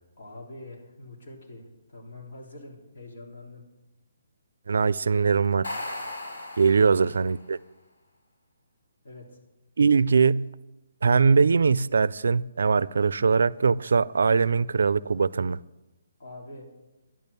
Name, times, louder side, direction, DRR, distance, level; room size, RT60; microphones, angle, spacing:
voice 1, 0.2-3.6 9.0-9.4 16.2-16.7, left 2 dB, 50° left, 3.3 m, -45 dB
voice 2, 4.7-5.7 6.6-7.6 9.8-10.5 11.0-15.6, right 5 dB, 75° right, 0.4 m, -21 dB
sound 1, 5.4-7.4, left 1 dB, 85° left, 4.8 m, -37 dB
11.0 x 10.5 x 6.9 m
hypercardioid pair, 175°, 0 cm